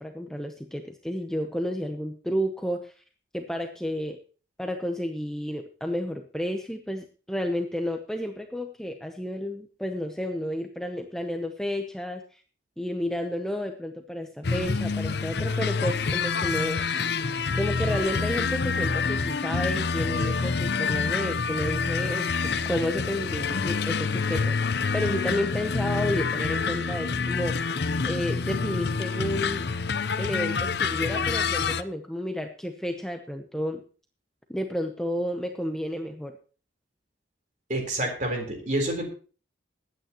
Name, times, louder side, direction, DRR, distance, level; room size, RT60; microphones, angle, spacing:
voice 1, 0.0-2.9 3.3-4.2 4.6-12.4 12.8-16.8 17.5-29.6 30.2-33.8 34.5-36.4, equal, 5° left, 4 dB, 0.7 m, -31 dB
sound 1, 14.4-31.8, left 5 dB, 55° left, 0.6 m, -27 dB
voice 2, 37.7-39.1, right 1 dB, 40° right, 3 dB, 3.9 m, -28 dB
21.0 x 9.2 x 3.0 m, 0.38 s
head